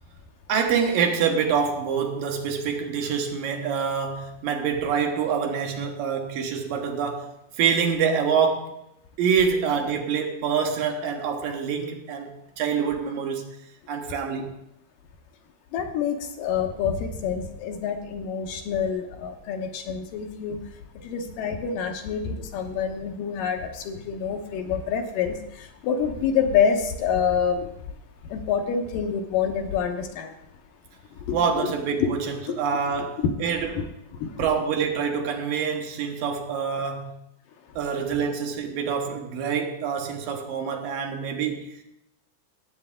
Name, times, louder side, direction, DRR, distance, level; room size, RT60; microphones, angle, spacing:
voice 1, 0.5-8.8 9.2-13.6 13.9-14.5 31.3-33.9 34.4-37.2 37.8-41.8, right 6 dB, 75° right, 2.9 m, -26 dB
voice 2, 15.7-20.6 21.0-27.7 28.2-30.3 31.1-31.4 32.0-32.1 32.5-32.6 33.2-33.3 33.8-33.9 34.2-34.5, left 7 dB, 75° left, 2.6 m, -27 dB
18.0 x 8.0 x 3.7 m
omnidirectional pair, 4.1 m